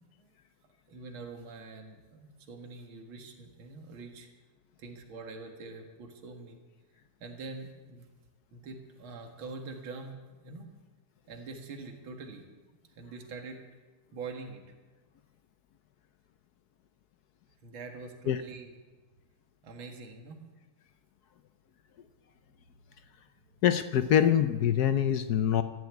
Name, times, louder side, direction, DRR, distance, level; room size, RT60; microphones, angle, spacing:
voice 1, 0.9-4.3 4.8-6.6 7.2-8.1 8.5-10.7 11.3-12.4 13.0-13.6 14.1-14.6 17.6-18.7 19.6-20.4, right 3 dB, 70° right, 3 dB, 2.5 m, -44 dB
voice 2, 23.6-25.6, left 9 dB, 70° left, 11 dB, 0.9 m, -24 dB
14.5 x 9.6 x 9.3 m, 1.3 s
omnidirectional pair, 2.3 m